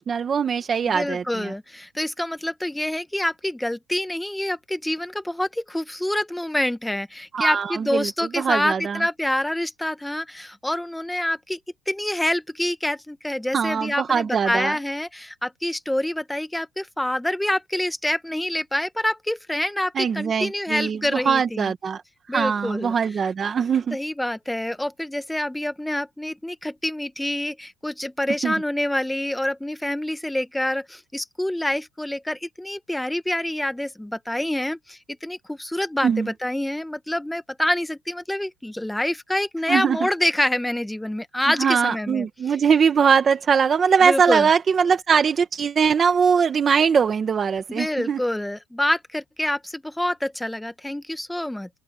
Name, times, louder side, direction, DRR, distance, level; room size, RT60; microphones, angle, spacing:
voice 1, 0.0-1.5 7.3-8.1 8.3-9.0 13.5-14.8 19.9-22.0 22.3-24.0 28.4-28.5 36.0-36.3 39.7-40.1 41.5-48.2, right 6 dB, 25° right, 1.1 m, -21 dB
voice 2, 0.9-11.6 11.9-21.7 22.3-23.0 23.9-42.3 44.0-44.5 47.7-51.7, left 1 dB, 5° left, 0.9 m, -26 dB
open air
cardioid pair, 155°, 0 cm